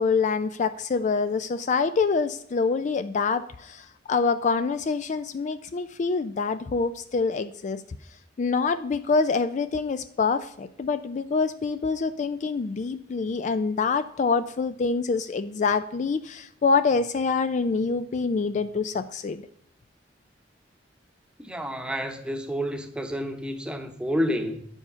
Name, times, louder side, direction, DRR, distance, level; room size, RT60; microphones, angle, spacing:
voice 1, 0.0-7.8 8.4-19.4, left 4 dB, 40° left, 0.3 m, -26 dB
voice 2, 21.4-24.6, equal, 5° right, 0.9 m, -29 dB
9.6 x 7.2 x 5.5 m
head